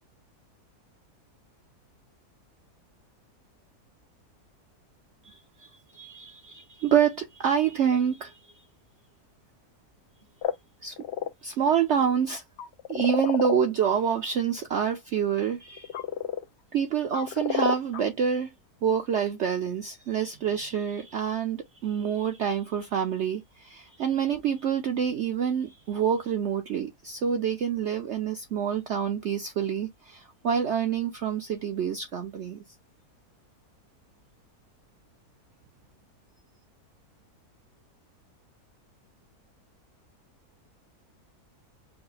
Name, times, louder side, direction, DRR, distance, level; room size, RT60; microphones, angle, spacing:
voice 1, 5.2-8.5 10.8-11.0 11.4-12.4 12.9-15.9 16.7-18.5 18.8-32.6, right 8 dB, 60° right, 0.8 m, -27 dB
sound 1, 10.4-10.5 11.0-11.3 12.6-13.9 15.8-16.4 17.1-18.0, left 9 dB, 65° left, 0.7 m, -30 dB
4.8 x 2.1 x 4.0 m
omnidirectional pair, 1.6 m